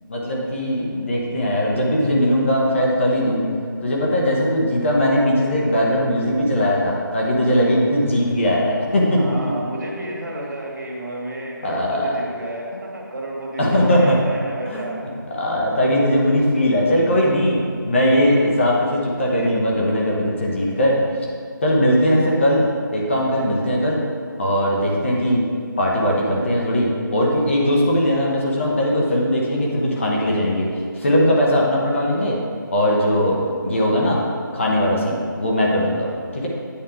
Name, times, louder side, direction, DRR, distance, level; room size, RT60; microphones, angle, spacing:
voice 1, 0.1-3.4 3.8-9.2 11.6-12.2 13.6-14.2 14.6-14.8 15.3-21.3 21.6-22.6 22.9-24.0 24.4-25.4 25.8-32.4 32.7-34.2 34.5-36.5, equal, 35° left, -3 dB, 1.2 m, -19 dB
voice 2, 9.1-15.1, right 1 dB, 60° right, -2 dB, 1.9 m, -31 dB
8.5 x 6.1 x 3.8 m, 2.3 s
figure-of-eight pair, 170°, 11 cm